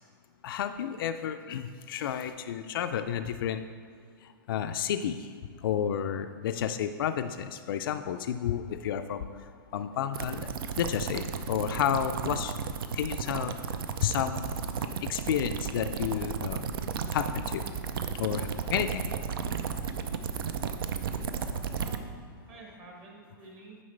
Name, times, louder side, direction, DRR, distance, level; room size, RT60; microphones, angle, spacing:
voice 1, 0.4-3.6 4.2-5.3 5.6-10.5 10.8-12.6 12.9-13.5 14.0-14.6 15.0-16.7 17.1-17.6 18.1-19.1, left 9 dB, 70° left, 9 dB, 0.4 m, -31 dB
sound 1, 10.1-22.0, right 6 dB, 70° right, 0.5 m, -33 dB
voice 2, 21.3-23.8, right 3 dB, 35° right, -1 dB, 1.3 m, -50 dB
9.4 x 5.4 x 3.2 m, 2.1 s
hypercardioid pair, 145°, 12 cm